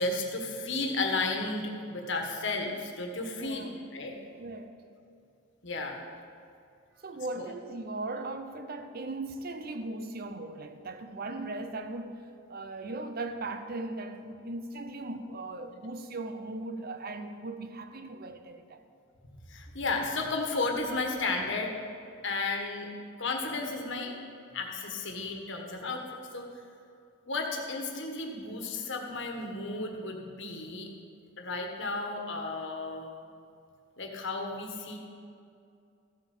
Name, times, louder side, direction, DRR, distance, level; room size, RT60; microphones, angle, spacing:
voice 1, 0.0-4.2 5.6-6.0 7.4-7.5 19.5-21.7 22.2-22.9 23.2-24.1 24.5-26.5 27.3-30.9 31.4-33.1 34.0-35.0, left 3 dB, 60° left, 1.5 m, -33 dB
voice 2, 3.4-3.8 4.4-4.8 7.0-18.8, right 2 dB, 45° right, 0.7 m, -38 dB
14.5 x 7.7 x 5.5 m
head